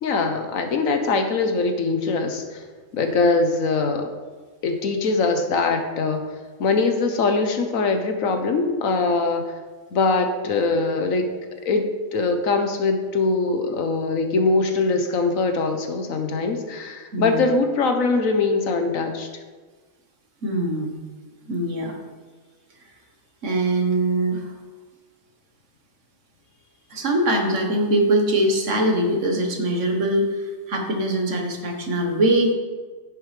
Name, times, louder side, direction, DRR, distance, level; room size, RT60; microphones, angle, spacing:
voice 1, 0.0-2.6 2.9-4.1 4.6-6.3 6.6-9.5 9.9-11.3 11.6-19.3, left 3 dB, 75° left, 6 dB, 1.4 m, -22 dB
voice 2, 17.1-17.4 20.4-21.0 21.5-22.0 23.4-24.5 26.9-32.5, right 1 dB, 65° right, 2 dB, 1.6 m, -22 dB
10.0 x 9.2 x 3.3 m, 1.4 s
omnidirectional pair, 1.4 m